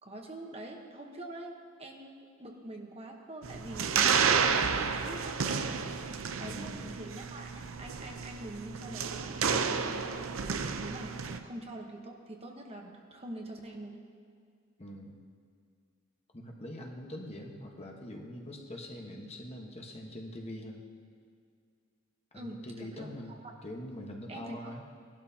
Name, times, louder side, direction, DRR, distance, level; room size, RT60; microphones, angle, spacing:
voice 1, 0.0-5.8 6.1-14.0 22.3-23.5 24.3-24.7, right 1 dB, 30° right, 2 dB, 1.1 m, -45 dB
sound 1, 3.4-11.4, right 6 dB, 80° right, 0.6 m, -31 dB
voice 2, 6.4-6.9 14.8-15.2 16.3-20.8 22.3-24.8, left 1 dB, 30° left, 0 dB, 1.2 m, -43 dB
18.5 x 12.0 x 2.8 m, 2.2 s
head